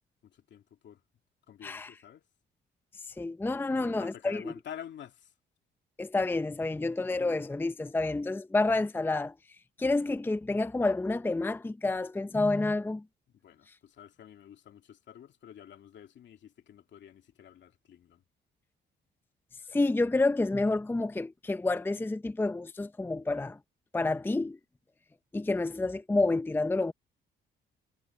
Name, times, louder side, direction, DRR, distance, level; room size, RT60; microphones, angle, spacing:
voice 1, 0.2-1.0 1.5-2.2 3.7-5.3 13.4-18.2, left 10 dB, 65° left, 2.5 m, -49 dB
voice 2, 1.6-1.9 3.2-4.5 6.0-9.3 9.8-13.0 19.7-23.6 23.9-24.6 25.3-26.9, left 2 dB, 10° left, 0.6 m, -29 dB
cardioid pair, 90°, 20 cm